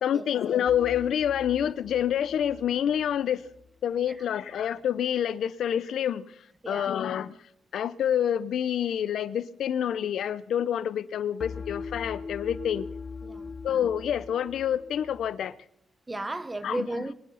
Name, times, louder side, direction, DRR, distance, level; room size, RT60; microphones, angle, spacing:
voice 1, 0.0-3.5 3.8-6.3 6.7-7.4 7.7-12.9 13.6-15.6 16.6-16.9, left 9 dB, 70° left, 0.6 m, -27 dB
sound 1, 0.7-3.7 11.4-15.4, left 4 dB, 40° left, 1.1 m, -41 dB
voice 2, 6.6-6.9 13.2-13.6 16.1-17.1, right 2 dB, 15° right, 0.9 m, -34 dB
22.5 x 10.0 x 5.6 m
wide cardioid pair, 165°, 0 cm